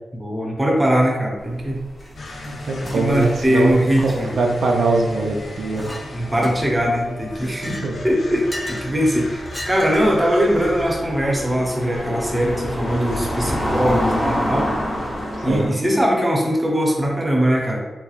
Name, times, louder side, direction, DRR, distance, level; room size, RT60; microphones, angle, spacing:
voice 1, 0.1-1.8 2.8-4.3 6.1-7.8 8.0-14.7 15.4-17.8, equal, 15° right, -2 dB, 0.7 m, -21 dB
sound 1, 1.5-7.1 7.3-7.5 8.2-15.7, equal, 35° left, 1.1 m, -28 dB
sound 2, 2.1-13.8, left 1 dB, 70° left, 0.6 m, -37 dB
voice 2, 2.5-3.8 4.0-5.9 7.6-7.9 15.4-15.6, right 3 dB, 80° right, 0 dB, 0.5 m, -22 dB
Chink clink, 5.8-6.1 6.4-6.9 7.4-8.9 9.5-10.2, left 1 dB, 20° left, 0.5 m, -34 dB
3.4 x 2.9 x 2.4 m, 1.2 s
cardioid pair, 85°, 0 cm